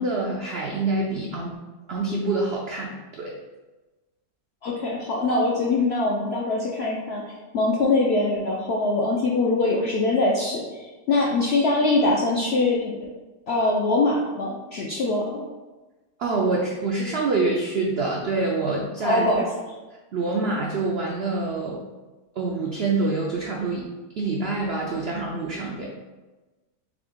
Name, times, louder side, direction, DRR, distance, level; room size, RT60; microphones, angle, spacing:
voice 1, 0.0-1.6 1.9-3.3 16.2-19.3 20.1-21.8 22.4-23.9 24.2-25.9, right 3 dB, 80° right, -2 dB, 0.5 m, -26 dB
voice 2, 4.6-7.2 7.5-13.0 13.5-15.4 19.0-19.5, left 2 dB, 70° left, -3 dB, 0.6 m, -23 dB
3.7 x 3.4 x 3.6 m, 1.2 s
omnidirectional pair, 1.7 m